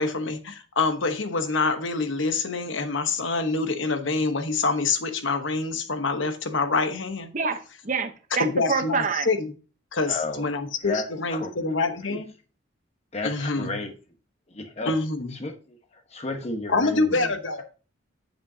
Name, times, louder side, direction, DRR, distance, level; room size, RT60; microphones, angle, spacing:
voice 1, 0.0-7.3 8.4-9.5 9.9-12.3 13.2-13.8 14.9-15.3 16.7-17.6, left 3 dB, 70° left, 1.0 m, -26 dB
voice 2, 7.3-9.3, right 5 dB, 40° right, 0.8 m, -27 dB
voice 3, 10.1-10.5 10.8-12.2 13.1-13.9 14.5-14.9 15.3-17.3, left 3 dB, 30° left, 1.2 m, -33 dB
8.2 x 7.4 x 2.7 m
head